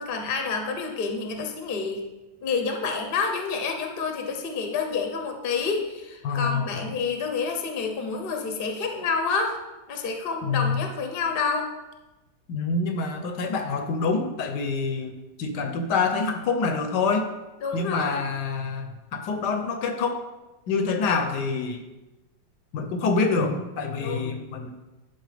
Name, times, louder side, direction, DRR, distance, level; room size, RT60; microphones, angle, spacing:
voice 1, 0.0-2.0 2.4-9.6 9.9-11.7 17.6-18.2 24.0-24.3, left 5 dB, 45° left, 4 dB, 0.8 m, -28 dB
voice 2, 6.2-6.7 10.4-10.9 12.5-17.3 17.7-20.2 20.7-21.8 22.7-24.8, left 4 dB, 75° left, 7 dB, 1.2 m, -26 dB
11.5 x 4.1 x 3.3 m, 1.0 s
omnidirectional pair, 1.9 m